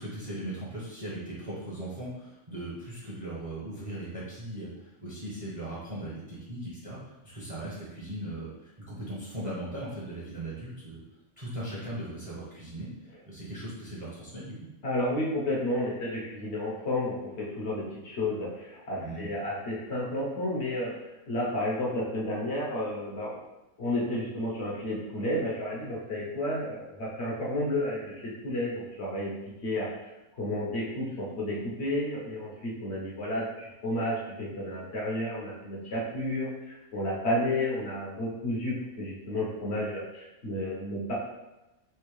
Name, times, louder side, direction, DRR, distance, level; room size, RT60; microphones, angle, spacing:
voice 1, 0.0-11.0 11.4-12.9 13.3-14.5 19.0-19.3, right 1 dB, 30° right, -8 dB, 0.8 m, -38 dB
voice 2, 14.8-23.4 23.8-29.3 29.6-29.9 30.4-41.1, left 1 dB, 55° left, -5 dB, 0.9 m, -31 dB
3.5 x 2.7 x 3.1 m, 1.0 s
omnidirectional pair, 1.5 m